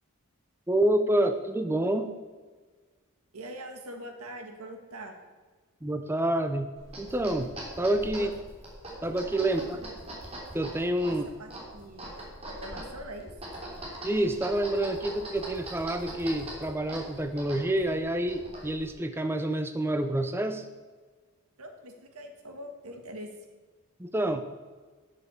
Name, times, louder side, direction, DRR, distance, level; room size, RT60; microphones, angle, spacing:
voice 1, 0.7-2.1 5.8-6.7 7.0-8.3 9.0-9.8 10.5-11.2 14.0-20.6 24.0-24.4, right 1 dB, 10° right, 8 dB, 0.5 m, -28 dB
voice 2, 3.3-5.1 8.1-8.3 9.6-9.9 11.1-12.1 12.4-13.3 21.6-23.3, right 1 dB, 85° right, 4 dB, 1.7 m, -43 dB
sound 1, 6.8-18.9, right 1 dB, 25° right, 3.2 m, -42 dB
10.5 x 6.7 x 7.0 m, 1.4 s
head